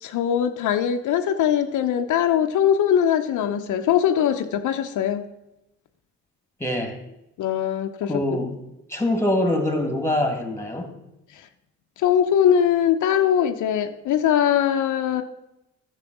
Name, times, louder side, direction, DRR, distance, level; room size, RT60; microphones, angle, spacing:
voice 1, 0.0-5.2 7.4-8.2 11.3-11.5 12.0-15.2, left 9 dB, 80° left, 6 dB, 0.8 m, -21 dB
voice 2, 6.6-7.0 8.1-8.6 8.9-10.9, left 1 dB, 10° left, 6 dB, 2.1 m, -24 dB
10.5 x 7.4 x 6.1 m, 0.91 s
cardioid pair, 90°, 30 cm